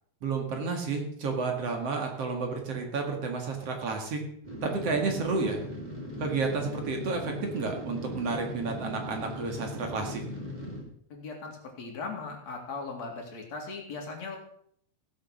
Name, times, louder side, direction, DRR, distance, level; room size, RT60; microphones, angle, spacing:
voice 1, 0.2-4.2 4.6-5.6 6.2-10.2, right 4 dB, 55° right, 2 dB, 2.9 m, -31 dB
sound 1, 4.4-10.8, left 1 dB, 15° right, 3.2 m, -39 dB
voice 2, 11.1-14.4, left 4 dB, 60° left, 1 dB, 3.7 m, -38 dB
16.5 x 7.6 x 6.4 m, 0.67 s
omnidirectional pair, 3.5 m